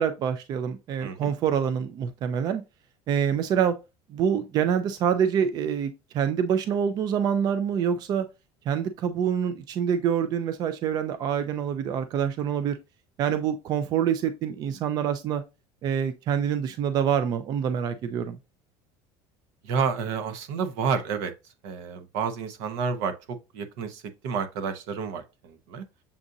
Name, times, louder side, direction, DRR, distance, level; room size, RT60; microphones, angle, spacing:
voice 1, 0.0-2.6 3.1-3.7 4.1-8.3 8.7-12.8 13.2-15.4 15.8-18.4, right 8 dB, 35° right, 0.4 m, -26 dB
voice 2, 19.6-21.3 21.6-25.8, right 6 dB, 80° right, 0.8 m, -30 dB
7.0 x 2.5 x 2.6 m
cardioid pair, 160°, 11 cm